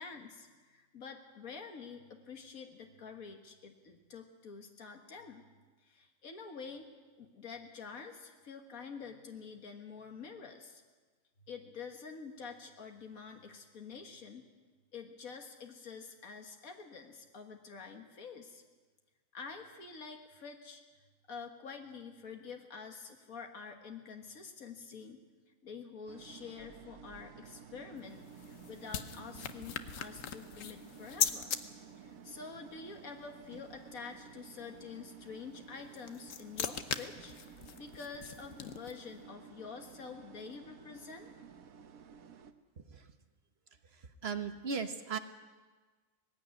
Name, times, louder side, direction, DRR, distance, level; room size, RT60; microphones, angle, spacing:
voice 1, 0.0-5.4 5.8-6.8 7.2-10.8 11.4-14.5 14.9-18.6 19.3-20.8 21.3-25.2 25.6-31.5 32.0-41.3, left 5 dB, 90° left, 4 dB, 2.0 m, -48 dB
sound 1, 26.1-42.5, right 7 dB, 90° right, 1.5 m, -54 dB
sound 2, 28.0-31.6 35.8-39.1, left 8 dB, 70° left, 1.3 m, -39 dB
voice 2, 42.8-43.1 43.9-45.2, right 5 dB, 50° right, 8 dB, 1.3 m, -38 dB
19.5 x 16.0 x 9.7 m, 1.4 s
omnidirectional pair, 1.4 m